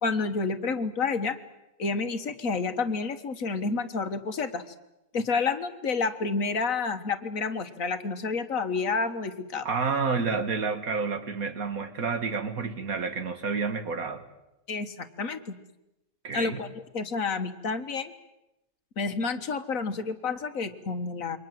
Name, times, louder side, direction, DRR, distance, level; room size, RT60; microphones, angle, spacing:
voice 1, 0.0-1.4 1.8-4.6 5.1-9.7 14.7-15.5 16.3-18.1 19.0-21.4, left 4 dB, 65° left, 10 dB, 1.8 m, -29 dB
voice 2, 9.6-14.2 16.2-16.6, right 4 dB, 75° right, 9 dB, 2.3 m, -29 dB
28.0 x 23.5 x 7.6 m, 0.92 s
omnidirectional pair, 1.5 m